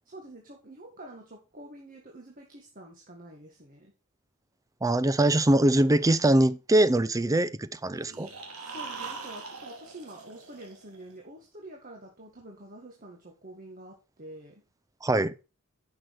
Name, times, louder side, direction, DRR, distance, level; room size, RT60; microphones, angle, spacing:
voice 1, 0.1-3.9 7.2-7.6 8.6-14.6, right 1 dB, 40° right, 1.9 m, -47 dB
voice 2, 4.8-8.3 15.0-15.3, right 1 dB, 15° right, 0.5 m, -23 dB
sound 1, 8.0-11.1, right 4 dB, 80° right, 2.8 m, -42 dB
10.5 x 6.3 x 4.8 m
head